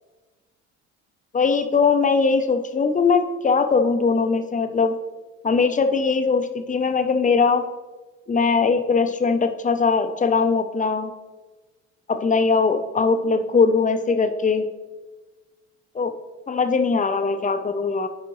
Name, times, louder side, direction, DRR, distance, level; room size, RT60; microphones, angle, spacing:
voice 1, 1.3-4.9 5.4-7.7 8.3-11.1 12.1-14.7 15.9-16.1 16.5-18.1, left 4 dB, 20° left, 8 dB, 0.7 m, -20 dB
9.4 x 5.0 x 3.1 m, 1.2 s
hypercardioid pair, 70°, 37 cm